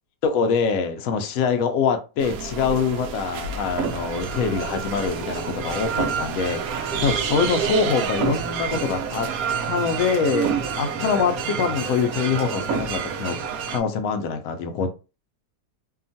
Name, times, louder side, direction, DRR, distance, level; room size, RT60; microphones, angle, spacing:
voice 1, 0.2-9.3 9.6-10.5 10.8-13.4 13.7-14.9, left 5 dB, 70° left, 0.8 m, -24 dB
sound 1, 2.2-13.8, right 6 dB, 70° right, 0.9 m, -28 dB
2.8 x 2.4 x 2.6 m
omnidirectional pair, 1.8 m